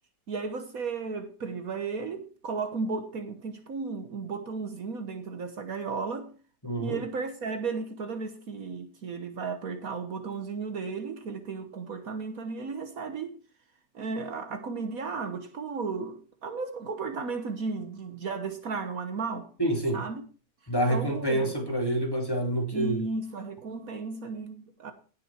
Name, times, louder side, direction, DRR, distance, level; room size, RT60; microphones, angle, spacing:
voice 1, 0.3-6.3 6.8-13.4 13.9-19.5 19.9-20.2 20.9-21.6 22.7-24.9, right 4 dB, 60° right, 1.6 m, -34 dB
voice 2, 6.6-7.0 19.6-20.0 20.7-23.0, right 1 dB, 15° left, 3.0 m, -27 dB
17.0 x 6.7 x 4.4 m
omnidirectional pair, 1.7 m